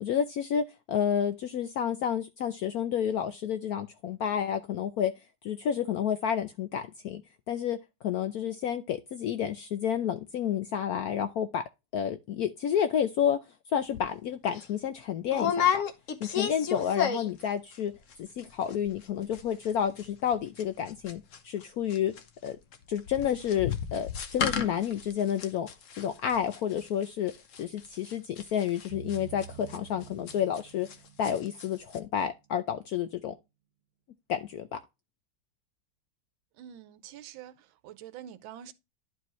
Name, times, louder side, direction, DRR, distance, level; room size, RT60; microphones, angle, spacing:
voice 1, 0.0-5.1 5.4-7.2 7.5-7.8 8.0-11.6 11.9-13.4 13.7-15.8 16.2-17.9 18.2-22.1 22.4-22.6 22.9-25.7 26.0-30.9 31.2-33.3 34.3-34.8, left 9 dB, 75° left, 0.8 m, -30 dB
sound 1, 13.9-14.1 14.5-14.6 15.3-17.5 17.7-18.1 18.4-18.5 18.7-19.1 19.3-21.6 21.9-31.0 31.2-31.7 31.9-32.0, left 8 dB, 55° left, 1.0 m, -32 dB
sound 2, 28.9-32.6, right 10 dB, 65° right, 1.5 m, -49 dB
voice 2, 36.6-37.5 37.8-38.7, right 10 dB, 85° right, 1.5 m, -46 dB
11.0 x 4.7 x 3.0 m
omnidirectional pair, 2.1 m